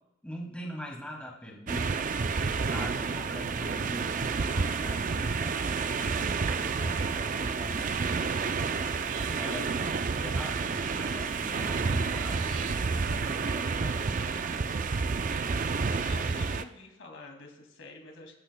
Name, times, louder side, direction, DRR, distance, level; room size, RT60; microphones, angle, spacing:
voice 1, 0.2-2.0 2.6-8.4 9.3-14.2, equal, 5° left, -3 dB, 2.3 m, -43 dB
sound 1, 1.7-16.6, right 4 dB, 40° right, 0.4 m, -30 dB
sound 2, 6.9-7.2 8.8-12.8, right 10 dB, 90° right, 0.5 m, -44 dB
voice 2, 15.7-18.3, left 3 dB, 75° left, 2 dB, 2.4 m, -48 dB
25.0 x 15.0 x 2.3 m, 0.95 s
head